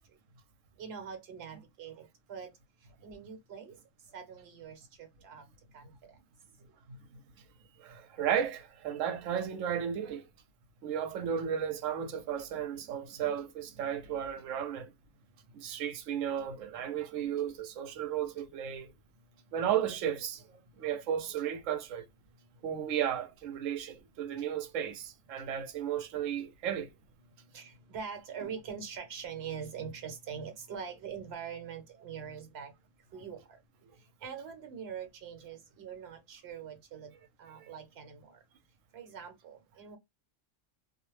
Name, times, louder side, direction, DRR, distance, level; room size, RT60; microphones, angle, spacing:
voice 1, 0.8-2.5 3.0-3.7 4.1-5.4 5.7-5.9 27.5-32.7 33.1-33.6 34.2-37.1 37.4-38.4 38.9-40.0, right 7 dB, 60° right, 1.0 m, -43 dB
voice 2, 6.9-7.2 7.8-10.3 10.8-14.9 15.5-18.9 19.5-20.5 20.8-22.1 22.6-26.9 37.6-37.7, right 9 dB, 85° right, 1.0 m, -34 dB
2.5 x 2.0 x 3.0 m
omnidirectional pair, 1.3 m